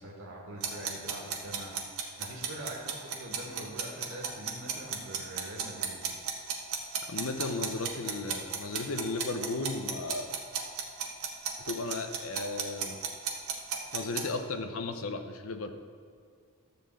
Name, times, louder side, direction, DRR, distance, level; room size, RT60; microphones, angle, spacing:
voice 1, 0.0-6.1, right 1 dB, 70° right, -3 dB, 1.9 m, -43 dB
sound 1, 0.6-14.2, right 7 dB, 90° right, 1.4 m, -34 dB
voice 2, 7.1-10.3 11.6-13.0 13.9-15.7, left 3 dB, 75° left, 7 dB, 0.8 m, -35 dB
12.5 x 4.4 x 7.6 m, 2.2 s
head